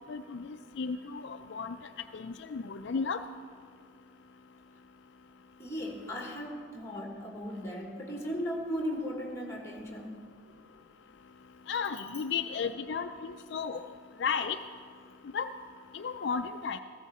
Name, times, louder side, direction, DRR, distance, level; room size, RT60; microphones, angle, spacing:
voice 1, 0.1-3.2 11.7-13.9 14.2-14.6 15.3-15.5 15.9-16.8, left 5 dB, 60° left, 8 dB, 0.4 m, -34 dB
voice 2, 5.6-10.2, equal, 15° left, 0 dB, 1.6 m, -37 dB
15.0 x 14.5 x 4.2 m, 2.1 s
head